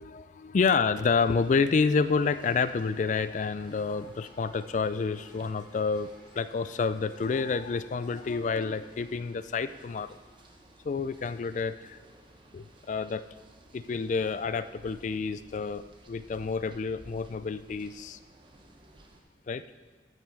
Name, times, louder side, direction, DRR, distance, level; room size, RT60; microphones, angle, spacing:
voice 1, 0.0-6.1 6.4-10.2 10.8-12.0 12.5-13.3 13.7-18.2 19.5-19.6, left 5 dB, 40° left, 14 dB, 0.3 m, -29 dB
sound 1, 1.2-19.2, right 1 dB, 25° right, 0.8 m, -56 dB
sound 2, 3.3-8.4, equal, 15° left, 3.2 m, -59 dB
14.0 x 5.4 x 4.6 m, 1.3 s
head